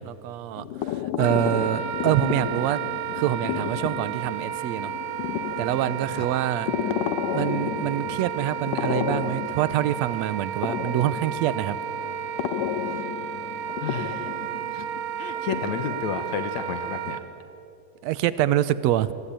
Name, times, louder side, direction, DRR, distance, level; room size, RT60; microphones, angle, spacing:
voice 1, 0.0-2.8 3.2-4.9 5.6-6.7 7.3-11.8 18.0-19.1, right 12 dB, 70° right, 15 dB, 1.8 m, -26 dB
sound 1, 0.6-16.1, left 10 dB, 85° left, 2.4 m, -32 dB
Wind instrument woodwind instrument, 1.2-17.2, right 9 dB, 90° right, 2.7 m, -32 dB
voice 2, 13.8-14.4 14.7-14.9 15.2-17.2, left 7 dB, 65° left, 9 dB, 2.4 m, -32 dB
24.5 x 21.5 x 8.9 m, 2.7 s
omnidirectional pair, 3.6 m